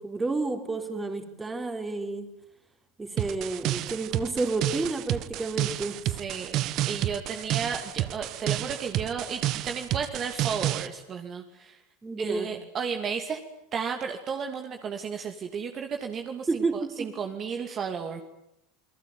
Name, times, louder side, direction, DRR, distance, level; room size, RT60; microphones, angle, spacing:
voice 1, 0.0-2.3 3.0-6.0 12.0-12.5 16.5-17.1, right 3 dB, 15° right, 6 dB, 3.9 m, -30 dB
sound 1, 3.2-10.9, right 14 dB, 50° right, 1.3 m, -30 dB
voice 2, 6.1-11.8 12.2-13.4 13.7-18.2, right 6 dB, 35° right, 4 dB, 2.6 m, -33 dB
28.5 x 19.5 x 9.4 m, 0.82 s
supercardioid pair, 115°, 0 cm